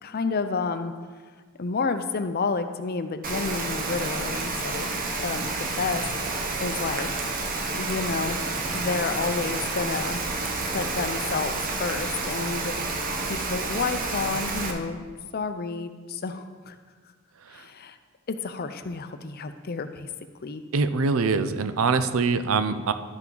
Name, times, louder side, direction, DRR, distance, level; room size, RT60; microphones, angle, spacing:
voice 1, 0.0-0.9 1.6-4.9 5.2-7.1 7.7-8.4 8.7-10.2 10.7-12.8 13.3-15.0 15.3-16.7 17.5-18.0 18.3-20.1 20.4-20.6, left 4 dB, 50° left, 9 dB, 0.5 m, -30 dB
Rain, 3.2-14.7, right 3 dB, 45° right, 0.9 m, -30 dB
Sliding door, 8.0-10.2, equal, 10° right, 0.8 m, -43 dB
voice 2, 20.7-22.9, right 4 dB, 85° right, 11 dB, 0.5 m, -23 dB
12.0 x 5.8 x 3.9 m, 1.5 s
head